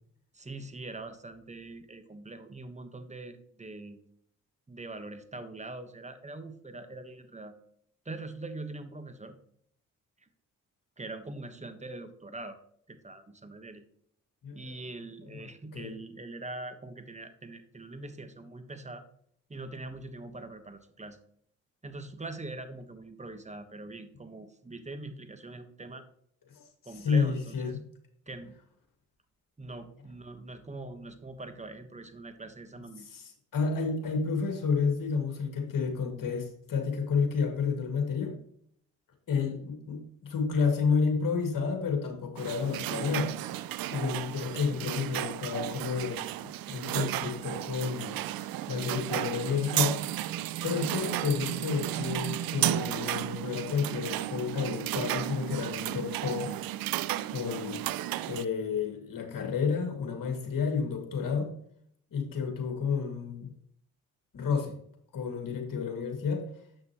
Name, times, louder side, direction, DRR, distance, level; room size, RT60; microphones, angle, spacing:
voice 1, 0.3-4.0 4.7-7.5 8.0-9.3 11.0-12.6 12.9-13.8 14.5-19.0 19.5-21.2 21.8-26.0 26.8-27.8 28.3-28.6 29.6-33.1, right 2 dB, 20° right, 9 dB, 1.3 m, -43 dB
voice 2, 14.4-14.8 15.7-16.0 26.6-26.7 26.9-27.8 33.0-38.3 39.3-46.2 46.7-48.2 48.7-50.0 50.6-56.5 57.3-57.8 58.3-61.5 62.1-63.5 64.3-64.8 65.1-66.5, left 5 dB, 60° left, 3 dB, 2.1 m, -30 dB
sound 1, 42.4-58.4, right 14 dB, 65° right, 0.5 m, -33 dB
7.8 x 6.0 x 3.0 m, 0.65 s
supercardioid pair, 50°, 38 cm